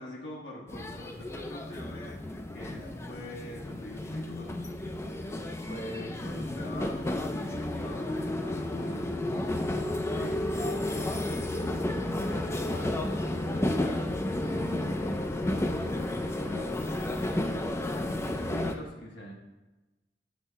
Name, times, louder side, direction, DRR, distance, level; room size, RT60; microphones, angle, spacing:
voice 1, 0.0-9.3 10.1-16.9 18.4-19.3, equal, 70° left, -2 dB, 1.1 m, -44 dB
sound 1, 0.7-18.7, left 1 dB, 15° left, 0.4 m, -32 dB
7.1 x 3.6 x 5.5 m, 1.1 s
head